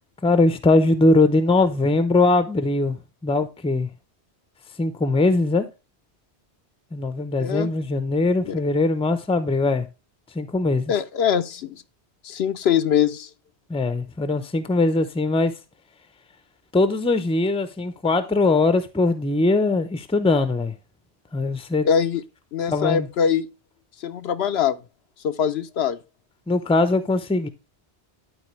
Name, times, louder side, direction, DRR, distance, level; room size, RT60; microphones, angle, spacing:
voice 1, 0.2-3.0 3.2-3.9 4.8-5.7 6.9-9.9 10.3-10.9 13.7-15.5 16.7-20.7 21.3-21.9 22.7-23.1 26.5-27.5, left 2 dB, 5° left, 0.5 m, -21 dB
voice 2, 7.4-7.7 8.5-8.6 10.9-11.8 12.2-13.3 21.8-22.2 22.5-23.5 24.0-24.8 25.2-26.0, left 8 dB, 70° left, 0.8 m, -22 dB
11.5 x 4.3 x 3.1 m
omnidirectional pair, 1.1 m